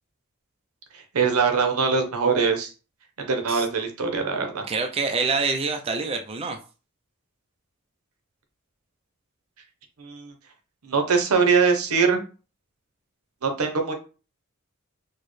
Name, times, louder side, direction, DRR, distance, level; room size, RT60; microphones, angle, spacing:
voice 1, 1.1-2.7 3.2-4.6 10.0-10.3 10.8-12.2 13.4-13.9, right 5 dB, 90° right, 5 dB, 0.8 m, -22 dB
voice 2, 4.7-6.6, right 4 dB, 25° right, 4 dB, 0.3 m, -26 dB
4.5 x 2.1 x 3.1 m, 0.34 s
head